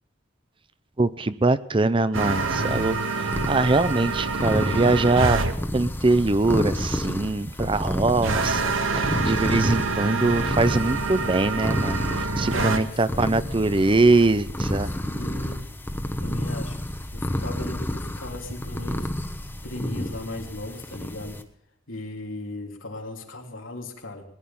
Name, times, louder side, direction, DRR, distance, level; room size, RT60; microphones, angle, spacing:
voice 1, 1.0-5.5 5.7-14.9, right 2 dB, 25° right, 15 dB, 0.5 m, -23 dB
sound 1, 2.1-21.4, left 1 dB, 10° left, 1.1 m, -30 dB
sound 2, 2.1-5.5 8.2-12.8, right 3 dB, 90° right, 1.5 m, -27 dB
voice 2, 12.5-13.4 14.8-15.7 16.2-16.8 17.1-19.1 19.6-21.4 21.9-24.2, left 2 dB, 85° left, 2 dB, 3.1 m, -37 dB
19.5 x 11.0 x 5.5 m, 0.74 s
head